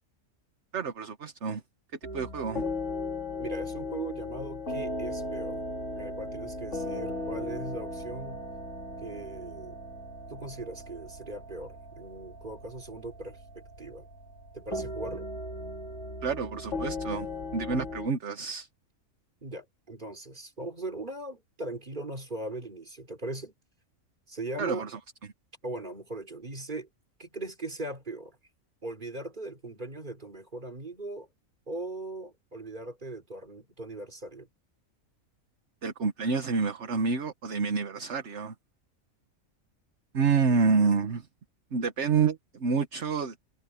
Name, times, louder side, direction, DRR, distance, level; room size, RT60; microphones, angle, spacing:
voice 1, 0.7-1.6 2.1-2.6 16.2-17.3 17.5-18.7 24.6-25.0 35.8-38.5 40.1-41.3 41.7-43.3, right 5 dB, 60° right, 1.5 m, -28 dB
sound 1, 2.0-18.1, left 2 dB, 60° left, 3.1 m, -37 dB
voice 2, 3.4-5.6 6.0-8.4 9.0-9.8 10.3-14.1 14.5-15.3 19.4-23.5 24.3-24.9 25.6-26.9 27.2-28.4 28.8-31.3 31.7-34.5, right 2 dB, 35° right, 3.5 m, -39 dB
omnidirectional pair, 1.4 m